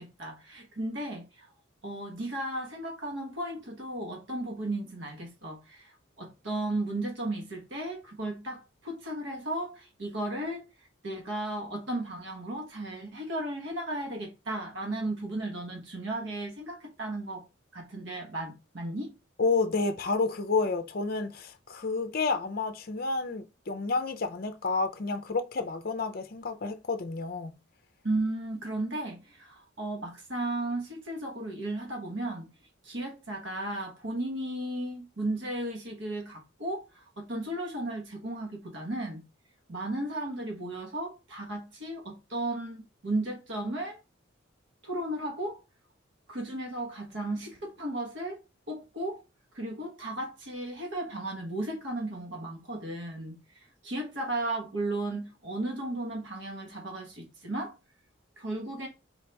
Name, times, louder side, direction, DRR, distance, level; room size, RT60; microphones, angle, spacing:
voice 1, 0.0-1.5 1.8-10.6 11.0-17.4 17.7-19.1 28.0-32.5 32.8-39.2 39.7-44.0 44.8-45.6 46.3-49.2 49.5-57.7 58.4-58.9, right 1 dB, 65° right, 1.0 m, -35 dB
voice 2, 19.4-27.5, left 3 dB, 45° left, 0.5 m, -30 dB
4.5 x 2.9 x 3.3 m
head